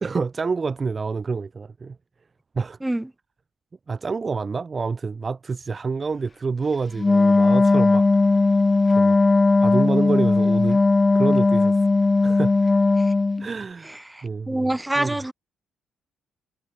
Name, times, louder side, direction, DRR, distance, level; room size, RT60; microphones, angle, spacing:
voice 1, 0.0-2.0 2.5-2.8 3.9-8.4 8.9-9.2 9.6-10.8 11.1-11.9 12.2-12.6 13.4-13.9 14.2-14.7 15.0-15.2, right 4 dB, 35° right, 0.7 m, -27 dB
Wind instrument woodwind instrument, 7.0-13.5, left 3 dB, 20° left, 0.8 m, -18 dB
voice 2, 13.8-15.3, right 1 dB, 10° right, 2.4 m, -27 dB
cardioid pair, 95°, 0 cm